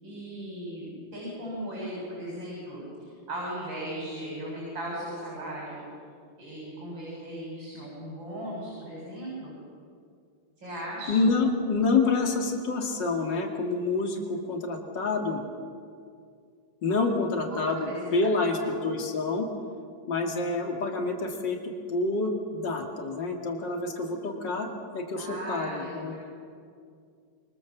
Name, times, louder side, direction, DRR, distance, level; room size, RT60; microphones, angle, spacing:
voice 1, 0.0-5.9 6.4-9.5 10.6-11.2 17.5-18.7 20.3-20.5 25.2-26.2, right 1 dB, 65° right, -5 dB, 8.2 m, -37 dB
voice 2, 11.1-15.4 16.8-19.5 20.1-24.7 24.9-26.1, left 3 dB, 60° left, 2 dB, 3.2 m, -27 dB
28.5 x 24.0 x 7.4 m, 2.3 s
omnidirectional pair, 2.3 m